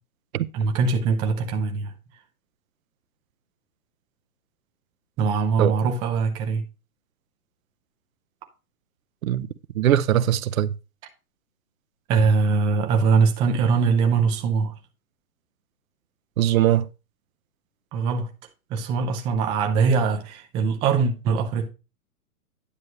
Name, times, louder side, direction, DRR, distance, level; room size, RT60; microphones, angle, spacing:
voice 1, 0.5-1.9 5.2-6.6 12.1-14.7 17.9-18.3 18.7-21.7, right 5 dB, 10° right, 0.4 m, -22 dB
voice 2, 9.8-10.7 16.4-16.9, right 12 dB, 65° right, 0.6 m, -20 dB
9.9 x 6.5 x 3.1 m
hypercardioid pair, 130°, 44 cm